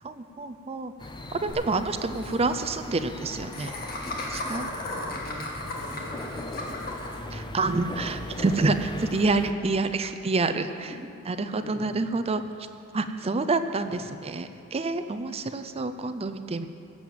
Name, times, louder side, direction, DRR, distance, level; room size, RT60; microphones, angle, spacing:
voice 1, 0.0-0.9 1.3-3.7 4.3-4.7 7.3-10.9 11.3-12.4 12.9-16.6, right 3 dB, 30° right, 9 dB, 0.5 m, -28 dB
sound 1, 1.0-9.5, left 1 dB, 20° left, 0.6 m, -39 dB
Laughter, 1.5-1.6 1.8-1.9 2.1-2.3 3.5-7.2, left 2 dB, 45° left, 1.9 m, -35 dB
voice 2, 4.2-4.6 4.9-8.2 10.9-11.1 11.6-11.9 13.2-13.3 13.8-14.0, equal, 70° left, -3 dB, 3.2 m, -45 dB
16.5 x 7.6 x 7.2 m, 2.6 s
head